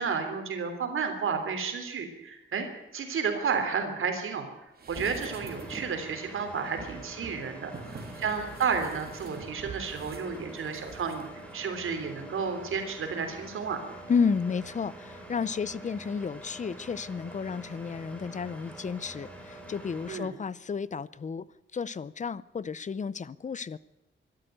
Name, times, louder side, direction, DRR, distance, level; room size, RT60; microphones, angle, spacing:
voice 1, 0.0-13.8 20.1-20.3, right 5 dB, 80° right, 3.5 m, -32 dB
sound 1, 4.8-6.0 6.7-11.2 11.5-11.6, right 4 dB, 50° right, 3.1 m, -44 dB
Engine, 5.3-20.2, right 1 dB, 5° left, 4.1 m, -46 dB
voice 2, 14.1-21.5 21.7-23.8, left 5 dB, 35° left, 0.7 m, -32 dB
23.5 x 12.5 x 9.0 m
wide cardioid pair, 135°, 21 cm